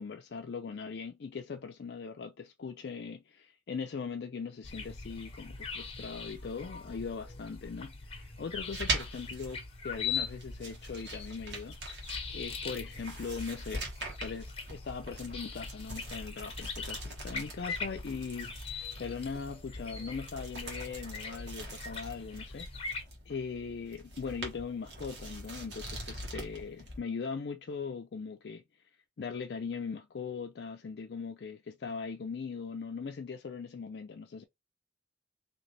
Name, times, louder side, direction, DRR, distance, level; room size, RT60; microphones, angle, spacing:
voice 1, 0.0-12.1 12.3-13.8 14.2-23.0 23.3-28.6 29.2-34.4, left 5 dB, 65° left, 0.4 m, -40 dB
sound 1, 4.6-23.0, left 4 dB, 35° left, 1.0 m, -41 dB
sound 2, 8.5-27.0, right 2 dB, 75° right, 1.5 m, -43 dB
3.9 x 2.9 x 3.2 m
head